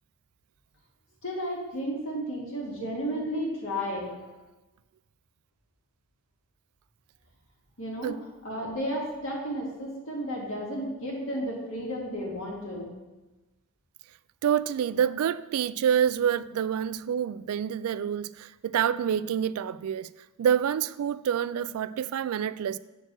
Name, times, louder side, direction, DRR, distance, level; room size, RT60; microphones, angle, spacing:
voice 1, 1.2-4.1 7.8-8.1 8.4-12.9, equal, 65° left, 2.2 m, -33 dB
voice 2, 14.4-20.1 20.4-22.8, right 8 dB, 80° right, 0.3 m, -27 dB
7.6 x 4.6 x 6.1 m
head